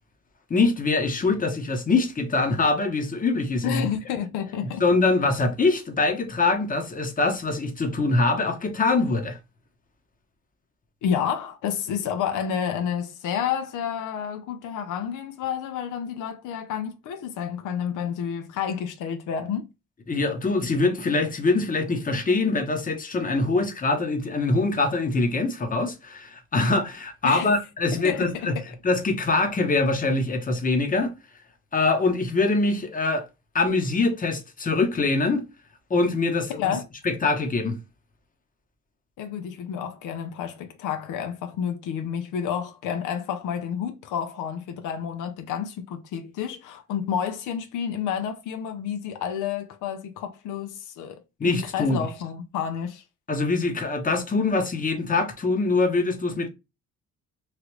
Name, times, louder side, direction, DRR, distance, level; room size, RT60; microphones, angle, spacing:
voice 1, 0.5-3.9 4.8-9.4 20.1-28.6 28.8-31.1 31.7-33.2 33.5-35.4 35.9-36.7 37.0-37.8 51.4-52.0 53.3-56.5, left 3 dB, 30° left, 0.9 m, -23 dB
voice 2, 3.6-4.8 11.0-19.7 27.2-27.5 27.9-28.5 36.6-36.8 39.2-53.0, left 8 dB, 85° left, 0.5 m, -30 dB
3.2 x 2.4 x 3.0 m
cardioid pair, 90°, 30 cm